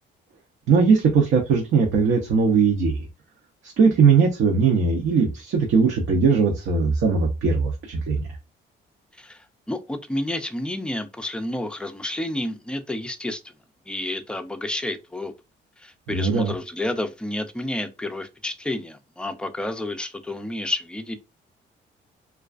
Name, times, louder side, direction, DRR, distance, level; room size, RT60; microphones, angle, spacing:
voice 1, 0.7-3.0 3.6-8.2 16.1-16.5, right 5 dB, 70° right, 0.6 m, -19 dB
voice 2, 9.1-13.5 13.9-15.3 15.8-21.2, left 1 dB, 5° left, 0.3 m, -30 dB
2.3 x 2.3 x 2.3 m
cardioid pair, 90°, 20 cm